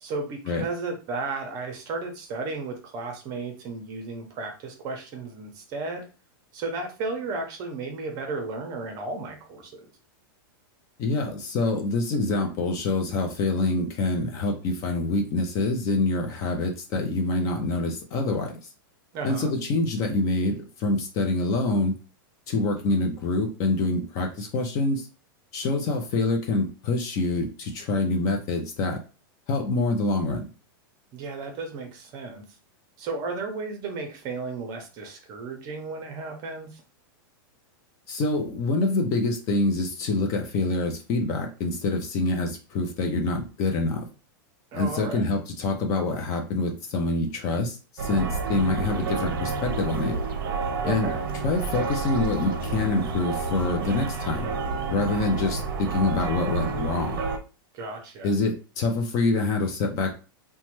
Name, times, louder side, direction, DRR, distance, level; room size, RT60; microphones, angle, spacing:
voice 1, 0.0-6.1 6.5-9.9 19.1-19.5 31.1-32.4 33.0-36.8 44.7-45.3 50.8-51.2 57.7-58.3, right 3 dB, 30° right, 4 dB, 0.7 m, -34 dB
voice 2, 11.0-18.5 19.2-21.9 22.5-25.1 25.5-29.0 29.5-30.4 38.1-44.1 44.7-47.8 48.0-50.2 50.8-51.1 51.4-54.5 54.9-57.2 58.2-60.1, left 2 dB, 30° left, 3 dB, 0.4 m, -26 dB
sound 1, 48.0-57.4, right 4 dB, 65° right, 0.5 m, -29 dB
3.0 x 2.2 x 3.0 m, 0.33 s
supercardioid pair, 160°, 12 cm